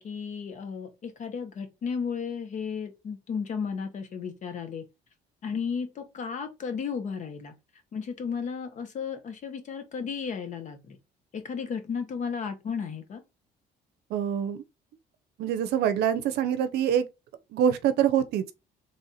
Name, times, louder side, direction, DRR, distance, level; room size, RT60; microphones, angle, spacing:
voice 1, 0.0-4.8 5.4-7.5 7.9-11.0 11.3-13.2, left 6 dB, 45° left, 1.0 m, -34 dB
voice 2, 14.1-14.6 15.4-17.1 17.5-18.4, right 9 dB, 75° right, 0.6 m, -25 dB
3.3 x 2.5 x 4.1 m
cardioid pair, 110°, 17 cm